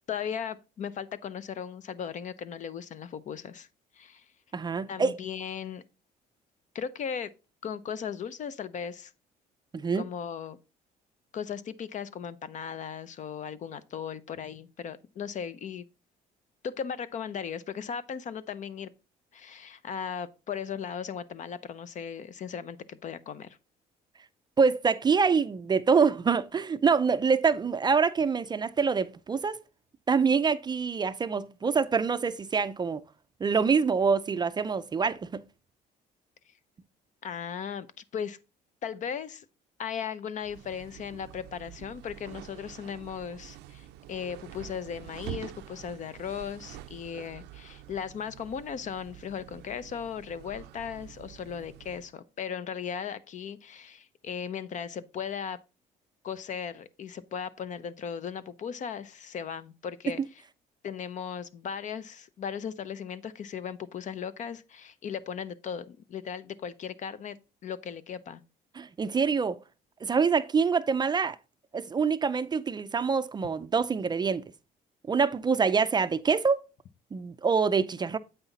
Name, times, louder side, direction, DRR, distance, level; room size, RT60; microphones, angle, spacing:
voice 1, 0.1-3.7 4.0-4.2 4.9-5.8 6.7-7.3 7.6-9.1 9.9-10.6 11.3-15.8 16.6-18.9 19.3-23.6 37.2-37.9 38.1-38.4 38.8-39.4 39.8-55.6 56.2-60.2 60.8-67.4 67.6-68.4, left 7 dB, 45° left, 0.6 m, -37 dB
voice 2, 4.5-5.2 9.7-10.0 24.6-29.6 30.1-33.0 33.4-35.4 68.8-69.6 70.0-71.4 71.7-74.4 75.1-76.7 77.1-78.2, right 5 dB, 25° right, 0.4 m, -25 dB
sound 1, 40.4-52.1, right 13 dB, 85° right, 0.5 m, -47 dB
8.1 x 5.6 x 4.0 m
cardioid pair, 110°, 17 cm